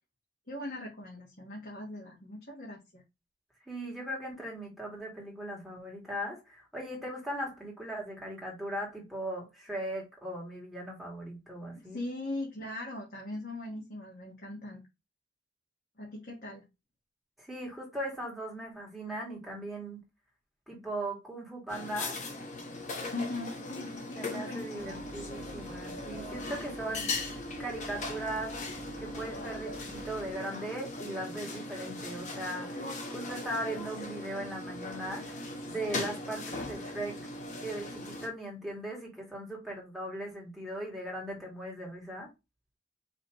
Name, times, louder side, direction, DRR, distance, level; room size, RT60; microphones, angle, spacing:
voice 1, 0.5-3.0 11.7-14.8 16.0-16.6 23.1-25.0, left 2 dB, 60° left, 1.4 m, -40 dB
voice 2, 3.7-12.0 17.4-20.0 20.7-22.2 24.2-27.2 27.6-28.6 29.0-35.4 35.7-37.2 37.6-42.3, right 1 dB, ahead, 2.0 m, -38 dB
sound 1, 21.7-38.3, left 2 dB, 45° left, 1.0 m, -39 dB
sound 2, 24.8-30.4, right 1 dB, 45° right, 0.8 m, -49 dB
5.3 x 3.2 x 3.0 m
head